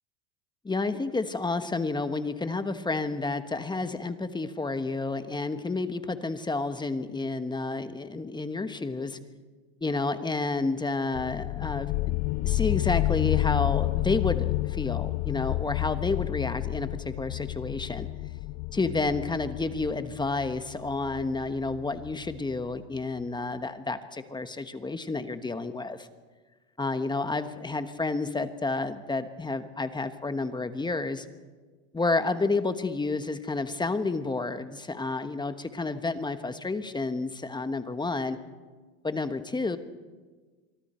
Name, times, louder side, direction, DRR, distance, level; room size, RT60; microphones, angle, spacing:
voice 1, 0.6-9.2 9.8-18.1 18.7-26.1 26.8-31.3 31.9-38.4 39.0-39.8, left 3 dB, 10° left, 9 dB, 1.3 m, -30 dB
sound 1, 11.1-22.6, left 19 dB, 60° left, 0.6 m, -30 dB
26.0 x 24.0 x 4.5 m, 1.4 s
supercardioid pair, 105°, 35 cm